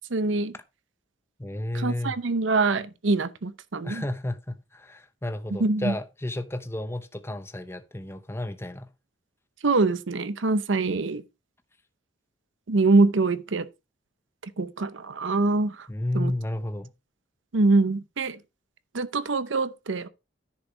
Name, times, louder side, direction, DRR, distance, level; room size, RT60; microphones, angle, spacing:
voice 1, 0.1-0.5 1.7-4.0 5.6-5.9 9.6-11.2 12.7-13.7 14.6-15.8 16.1-16.3 17.5-18.4 18.9-20.1, right 3 dB, 75° right, 0.8 m, -24 dB
voice 2, 1.4-2.2 3.8-8.9 15.9-16.9, left 1 dB, 15° left, 0.8 m, -32 dB
10.0 x 4.9 x 5.1 m
head